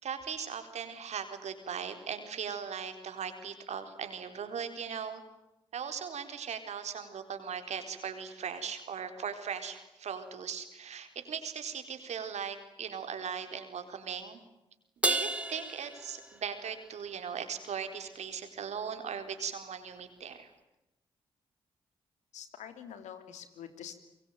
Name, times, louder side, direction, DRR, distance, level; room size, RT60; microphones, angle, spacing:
voice 1, 0.0-5.2 5.7-14.4 15.0-20.5, right 7 dB, 70° right, 8 dB, 4.2 m, -39 dB
Crash cymbal, 15.0-16.8, right 2 dB, 10° right, 3.0 m, -32 dB
voice 2, 22.3-23.9, left 9 dB, 80° left, 9 dB, 3.0 m, -46 dB
25.5 x 23.0 x 9.3 m, 0.94 s
hypercardioid pair, 40°, 12 cm